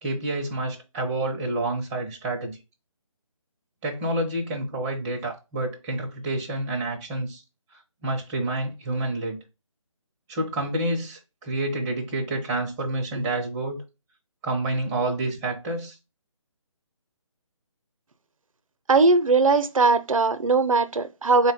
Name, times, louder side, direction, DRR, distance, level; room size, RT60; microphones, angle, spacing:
voice 1, 0.0-2.6 3.8-7.4 8.0-9.4 10.3-13.8 14.4-16.0, right 2 dB, 10° right, 0.6 m, -28 dB
voice 2, 18.9-21.5, right 3 dB, 85° right, 0.5 m, -19 dB
4.0 x 2.2 x 3.9 m
figure-of-eight pair, 155°, 17 cm